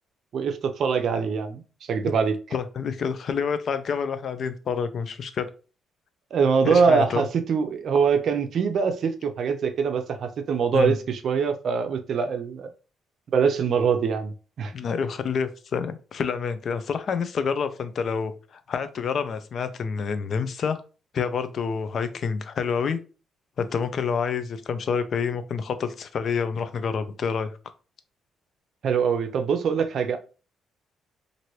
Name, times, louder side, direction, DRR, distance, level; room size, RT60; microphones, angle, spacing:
voice 1, 0.3-2.4 6.3-12.7 13.3-14.7 28.8-30.2, right 6 dB, 60° right, 0.5 m, -23 dB
voice 2, 2.5-5.5 6.6-7.3 10.7-11.0 14.7-20.8 21.1-23.0 23.6-27.5, left 6 dB, 55° left, 0.4 m, -28 dB
2.9 x 2.6 x 3.0 m
cardioid pair, 90°, 0 cm